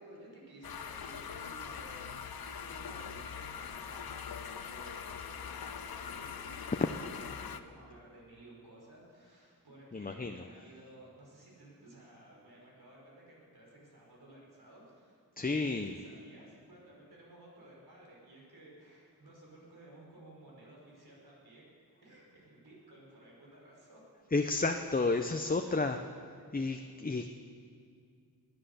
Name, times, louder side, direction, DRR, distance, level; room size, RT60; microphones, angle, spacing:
voice 1, 0.0-15.2 15.4-21.7 22.0-24.0 25.7-25.9, right 1 dB, 80° right, -4 dB, 5.3 m, -55 dB
sound 1, 0.6-7.6, left 7 dB, 75° left, 0.8 m, -42 dB
voice 2, 9.9-10.4 15.4-15.9 24.3-26.0 26.5-27.3, left 3 dB, 25° left, 5 dB, 0.6 m, -31 dB
20.0 x 10.0 x 6.8 m, 2.3 s
wide cardioid pair, 95°, 37 cm